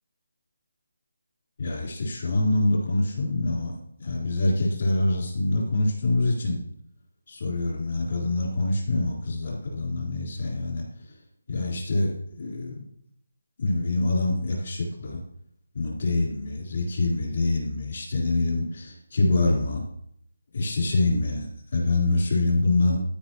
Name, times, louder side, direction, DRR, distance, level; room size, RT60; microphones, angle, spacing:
voice 1, 1.6-6.6 7.3-10.9 11.5-12.9 13.6-15.2 15.7-19.8 20.5-23.0, left 2 dB, 50° left, -2 dB, 3.8 m, -25 dB
13.5 x 5.2 x 3.1 m, 0.68 s
figure-of-eight pair, 170°, 0 cm